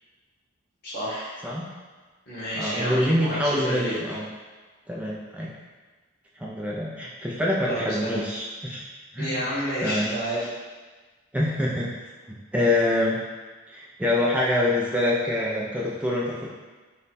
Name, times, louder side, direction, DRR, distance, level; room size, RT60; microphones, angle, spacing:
voice 1, 0.8-1.3 2.3-3.9 7.6-8.2 9.2-10.5, equal, 50° left, -11 dB, 1.4 m, -30 dB
voice 2, 2.6-4.3 4.9-5.5 6.4-8.8 9.1-9.4 9.8-10.1 11.3-11.9 12.5-13.2 13.7-16.5, left 1 dB, 5° right, -5 dB, 0.3 m, -25 dB
3.2 x 2.1 x 4.0 m, 1.3 s
head